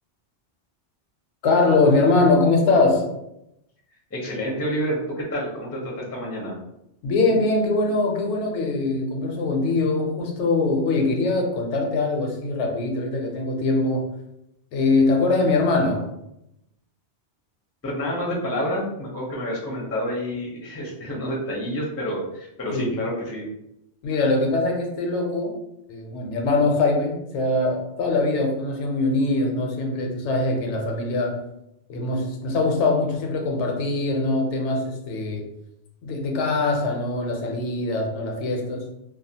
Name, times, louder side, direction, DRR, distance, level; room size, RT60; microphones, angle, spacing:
voice 1, 1.4-3.1 7.0-14.1 14.7-16.1 22.7-23.0 24.0-25.6 25.9-31.4 31.9-35.5 36.0-38.9, left 3 dB, 80° left, 2 dB, 0.9 m, -22 dB
voice 2, 4.1-6.6 17.8-23.4, equal, 25° left, -3 dB, 0.3 m, -28 dB
2.4 x 2.2 x 2.7 m, 0.84 s
omnidirectional pair, 1.2 m